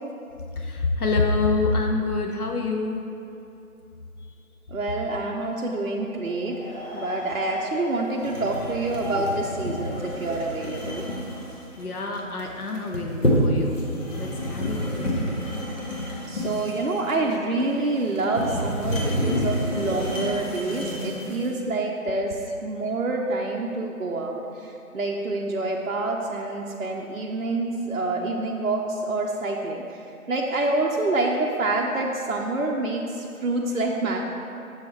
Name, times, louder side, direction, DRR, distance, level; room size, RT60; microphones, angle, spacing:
voice 1, 0.6-3.0 11.8-13.9 14.2-15.1, left 3 dB, 85° left, 2 dB, 0.8 m, -26 dB
voice 2, 4.7-11.0 16.3-34.2, right 2 dB, 65° right, 0 dB, 0.5 m, -27 dB
sound 1, 6.2-11.1, left 2 dB, 40° left, 1.0 m, -36 dB
sound 2, 8.2-21.5, equal, 60° left, 1.3 m, -29 dB
6.2 x 3.5 x 4.4 m, 2.7 s
figure-of-eight pair, 180°, 43 cm